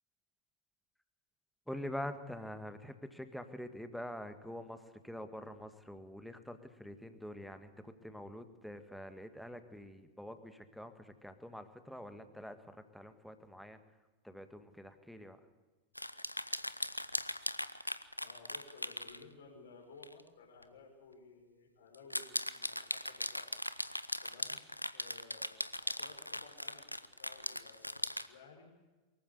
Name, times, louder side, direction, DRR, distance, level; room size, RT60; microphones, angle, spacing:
voice 1, 1.7-13.8 14.2-15.4, left 1 dB, ahead, 9 dB, 1.8 m, -46 dB
sound 1, 16.0-19.2 20.0-20.2 20.6-20.7 21.9-28.3, left 1 dB, 90° left, 0.7 m, -39 dB
voice 2, 18.2-23.5 24.2-24.6 24.9-28.7, left 4 dB, 60° left, 1 dB, 5.0 m, -57 dB
23.5 x 14.5 x 8.5 m, 1.2 s
figure-of-eight pair, 90°, 0 cm